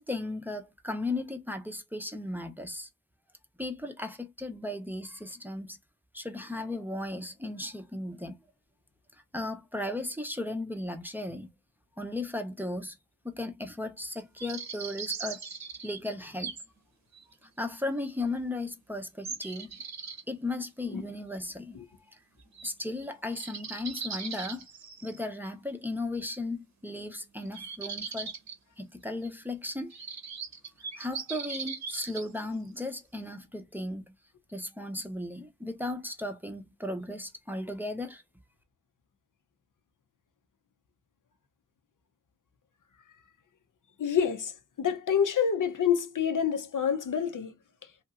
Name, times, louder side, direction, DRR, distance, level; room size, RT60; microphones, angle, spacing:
voice 1, 0.0-2.9 3.6-5.8 6.1-8.4 9.3-11.5 12.0-13.0 13.2-15.4 15.8-16.5 17.4-19.8 20.3-21.8 22.1-22.2 22.6-24.7 25.0-28.3 28.8-29.9 31.0-34.1 34.5-38.2, left 2 dB, 5° right, 0.6 m, -36 dB
sound 1, 14.4-16.7 17.1-17.2 18.0-18.1 19.2-20.2 22.5-22.7 23.0-23.1 23.3-25.2 27.5-28.5 29.2-29.3 29.9-32.3, right 5 dB, 55° right, 0.8 m, -39 dB
voice 2, 44.0-44.5 44.8-47.5, left 8 dB, 70° left, 0.6 m, -27 dB
2.9 x 2.7 x 2.4 m
wide cardioid pair, 70°, 33 cm